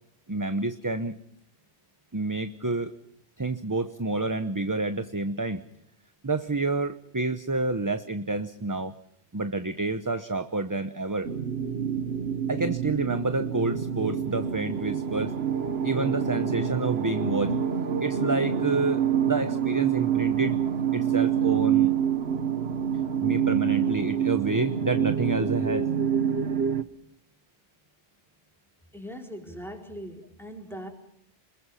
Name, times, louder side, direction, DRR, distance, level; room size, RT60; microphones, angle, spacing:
voice 1, 0.3-1.2 2.1-2.9 3.4-5.6 6.2-8.9 9.3-11.3 12.5-15.3 15.8-17.6 18.0-20.6 20.9-22.0 23.2-25.9, right 3 dB, 20° right, 10 dB, 0.8 m, -29 dB
sound 1, 11.2-26.8, right 8 dB, 65° right, 1.3 m, -26 dB
voice 2, 28.9-30.9, equal, ahead, 2 dB, 4.5 m, -40 dB
28.5 x 21.5 x 5.7 m, 0.70 s
omnidirectional pair, 1.2 m